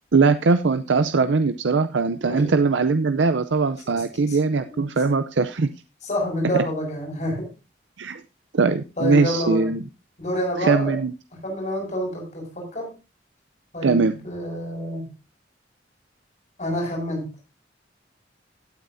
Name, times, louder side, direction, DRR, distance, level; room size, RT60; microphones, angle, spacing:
voice 1, 0.1-5.7 6.5-6.6 8.0-8.2 8.5-9.8 10.6-11.1 13.8-14.1, right 4 dB, 90° right, 10 dB, 0.6 m, -21 dB
voice 2, 6.0-7.5 9.0-9.7 10.2-11.0 11.4-12.9 13.7-15.1 16.6-17.3, equal, 40° left, 1 dB, 6.5 m, -28 dB
16.5 x 9.1 x 2.7 m, 0.30 s
head